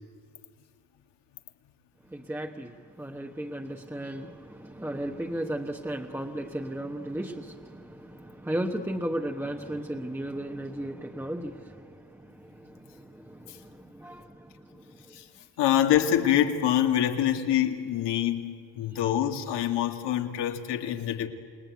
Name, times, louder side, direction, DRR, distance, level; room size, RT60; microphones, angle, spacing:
voice 1, 2.1-15.2, right 1 dB, 5° right, 1.1 m, -35 dB
voice 2, 15.6-21.3, left 11 dB, 75° left, 2.4 m, -25 dB
29.5 x 20.5 x 9.3 m
cardioid pair, 120°, 42 cm